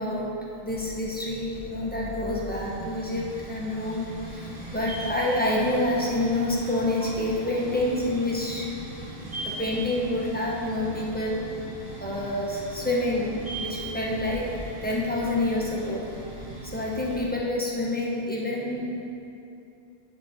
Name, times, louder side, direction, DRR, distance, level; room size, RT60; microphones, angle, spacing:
voice 1, 0.0-8.7 9.1-11.4 12.0-14.5 14.8-16.1 16.7-19.1, left 1 dB, 10° left, -5 dB, 1.1 m, -28 dB
sound 1, 0.7-17.3, right 2 dB, 60° right, 1.2 m, -40 dB
8.5 x 6.4 x 4.2 m, 2.7 s
omnidirectional pair, 1.0 m